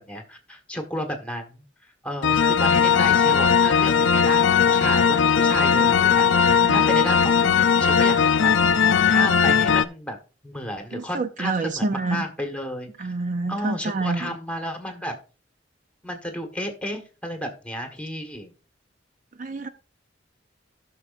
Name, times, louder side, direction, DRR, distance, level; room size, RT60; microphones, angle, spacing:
voice 1, 0.0-1.6 2.0-10.2 10.4-13.1 13.5-15.2 16.0-18.5, equal, 5° left, 1.4 m, -32 dB
sound 1, 2.2-9.9, left 6 dB, 75° left, 0.5 m, -18 dB
voice 2, 10.9-12.3 13.0-14.3 19.4-19.7, right 3 dB, 45° right, 0.5 m, -27 dB
17.5 x 6.2 x 2.5 m
head